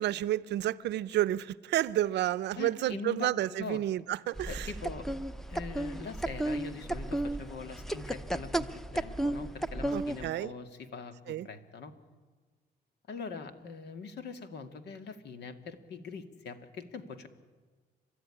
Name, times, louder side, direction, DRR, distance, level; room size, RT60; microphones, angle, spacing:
voice 1, 0.0-4.7 9.9-10.5 11.3-11.5, right 13 dB, 85° right, 0.7 m, -30 dB
voice 2, 2.5-3.8 4.5-5.1 5.5-11.9 13.1-17.3, left 5 dB, 75° left, 2.0 m, -42 dB
sound 1, 4.4-10.3, right 1 dB, ahead, 0.8 m, -34 dB
29.5 x 13.0 x 9.9 m
cardioid pair, 100°, 18 cm